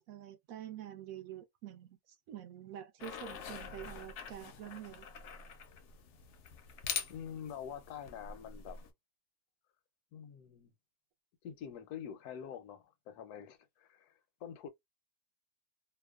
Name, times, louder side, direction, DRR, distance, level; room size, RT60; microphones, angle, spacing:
voice 1, 0.0-5.1, right 10 dB, 70° right, 1.0 m, -47 dB
sound 1, 3.0-8.9, left 7 dB, 65° left, 0.7 m, -44 dB
voice 2, 7.1-8.8 10.1-10.7 11.4-14.7, left 8 dB, 85° left, 1.1 m, -46 dB
2.9 x 2.0 x 2.3 m
omnidirectional pair, 1.6 m